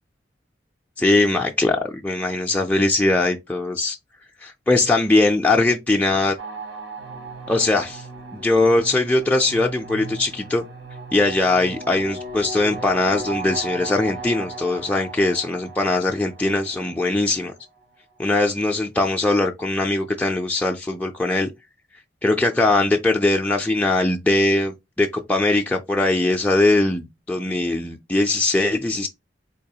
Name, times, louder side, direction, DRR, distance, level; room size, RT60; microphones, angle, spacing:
voice 1, 1.0-4.0 4.4-6.4 7.5-8.1 8.3-10.6 11.1-17.5 18.2-21.5 22.2-29.1, left 2 dB, 10° left, 0.3 m, -21 dB
sound 1, 6.4-17.5, right 2 dB, 90° right, 1.6 m, -36 dB
3.9 x 2.9 x 2.7 m
head